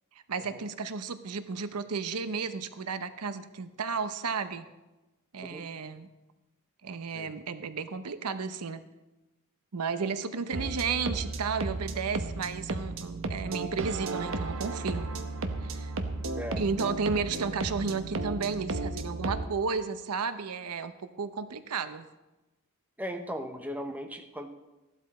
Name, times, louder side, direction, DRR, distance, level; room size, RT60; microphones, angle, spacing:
voice 1, 0.3-4.7 5.3-6.1 6.8-8.8 9.7-15.1 15.6-15.9 16.6-22.0, right 5 dB, 90° right, 11 dB, 0.8 m, -33 dB
sound 1, 10.5-19.5, right 3 dB, 65° right, 1.0 m, -34 dB
voice 2, 16.3-16.6 17.1-17.2 23.0-24.5, equal, 5° right, 6 dB, 1.0 m, -38 dB
15.0 x 12.0 x 4.2 m, 1.1 s
head